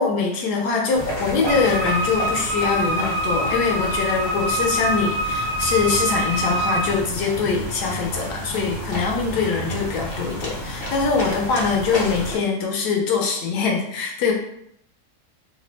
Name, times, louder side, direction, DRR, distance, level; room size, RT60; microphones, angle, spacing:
voice 1, 0.0-14.3, left 5 dB, 70° left, 0 dB, 1.1 m, -23 dB
sound 1, 0.9-12.3, equal, 45° left, 0.8 m, -31 dB
Wind instrument woodwind instrument, 1.5-7.0, right 1 dB, 75° right, 1.3 m, -25 dB
3.2 x 2.1 x 3.9 m, 0.73 s
omnidirectional pair, 1.9 m